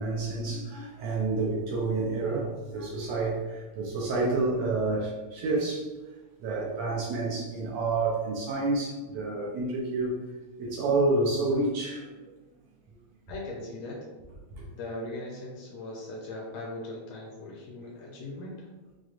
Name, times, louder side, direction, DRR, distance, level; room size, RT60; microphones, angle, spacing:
voice 1, 0.0-5.9 6.4-10.1 10.6-12.3 14.6-14.7, right 3 dB, 75° right, -4 dB, 1.7 m, -29 dB
voice 2, 13.3-14.0 14.7-18.7, left 2 dB, 75° left, -3 dB, 1.7 m, -39 dB
6.0 x 2.2 x 2.4 m, 1.2 s
omnidirectional pair, 3.4 m